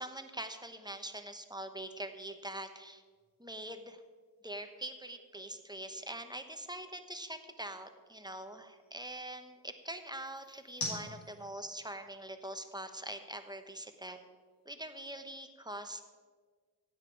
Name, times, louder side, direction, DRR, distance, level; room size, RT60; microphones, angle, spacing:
voice 1, 0.0-3.0 3.4-4.0 4.4-14.2 14.6-16.0, right 1 dB, 10° right, 7 dB, 1.1 m, -43 dB
sound 1, 1.0-15.2, left 2 dB, 70° left, 3.9 m, -51 dB
15.5 x 9.1 x 4.8 m, 1.5 s
cardioid pair, 70°, 36 cm